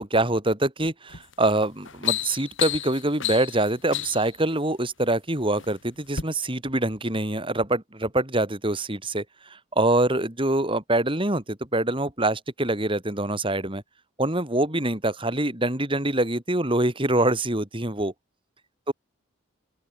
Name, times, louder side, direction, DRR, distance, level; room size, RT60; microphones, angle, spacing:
voice 1, 0.0-9.2 9.5-13.8 14.2-18.1 18.9-19.0, right 1 dB, 25° right, 3.9 m, -25 dB
sound 1, 1.1-1.3 1.7-4.3 5.2-5.7 6.1-6.2, left 11 dB, 65° left, 4.6 m, -30 dB
open air
head